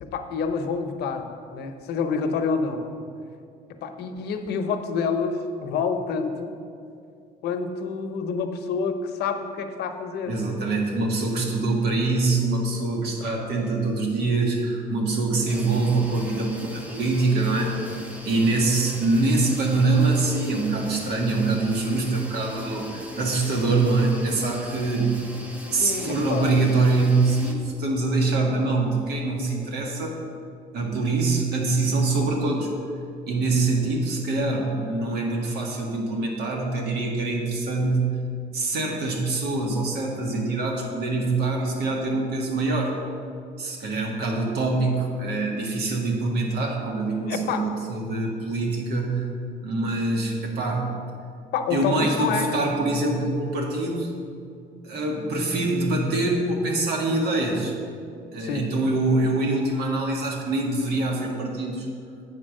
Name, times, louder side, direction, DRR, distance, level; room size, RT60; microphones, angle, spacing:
voice 1, 0.0-2.9 3.8-6.5 7.4-10.4 25.8-26.6 47.3-47.7 51.5-52.6 58.4-58.6, left 5 dB, 75° left, 7 dB, 0.8 m, -28 dB
voice 2, 10.2-17.8 18.2-25.1 25.7-30.2 30.7-32.7 33.3-38.1 38.5-43.0 43.6-49.3 49.6-51.0 51.7-54.1 54.8-57.7 58.3-61.9, right 3 dB, 70° right, 0 dB, 1.7 m, -24 dB
sound 1, 15.5-27.5, equal, 10° right, 1.0 m, -40 dB
8.2 x 4.4 x 6.4 m, 2.4 s
cardioid pair, 110°, 17 cm